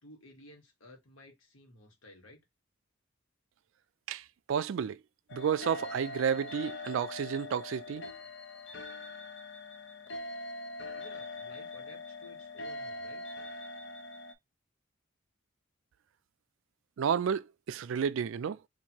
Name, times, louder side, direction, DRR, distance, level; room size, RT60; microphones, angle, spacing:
voice 1, 0.0-2.4 10.9-13.2, left 1 dB, 85° left, 1.4 m, -55 dB
voice 2, 4.1-5.0 5.3-8.1 17.0-18.6, right 7 dB, 75° right, 0.3 m, -31 dB
sound 1, 5.3-14.3, left 2 dB, 60° left, 0.7 m, -42 dB
2.9 x 2.7 x 4.3 m
head